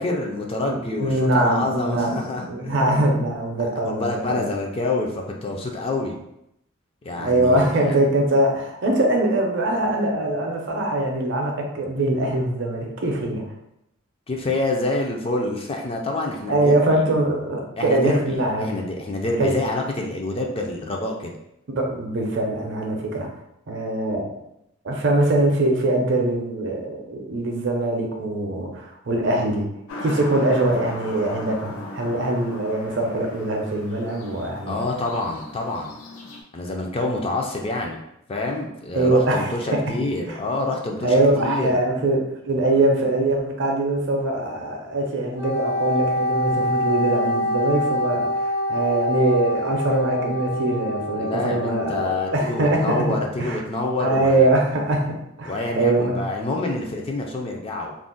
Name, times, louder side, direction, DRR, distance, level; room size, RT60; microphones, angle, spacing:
voice 1, 0.0-3.1 3.6-6.2 7.0-8.0 14.3-17.0 17.8-21.3 34.7-36.0 36.5-38.0 38.3-41.8 51.2-54.5 55.4-58.0, left 2 dB, 25° left, 1 dB, 0.3 m, -27 dB
voice 2, 0.6-2.2 2.5-4.5 7.2-13.4 16.5-18.7 19.4-19.6 21.7-23.3 23.7-24.4 24.8-29.7 30.0-34.8 38.9-39.8 40.3-40.4 41.0-53.6 54.0-56.2, right 2 dB, 55° right, 1 dB, 0.5 m, -22 dB
sound 1, 29.9-36.4, left 2 dB, 90° left, 0.5 m, -38 dB
Wind instrument woodwind instrument, 45.4-53.1, left 1 dB, 55° left, 0.8 m, -26 dB
2.4 x 2.0 x 3.7 m, 0.81 s
head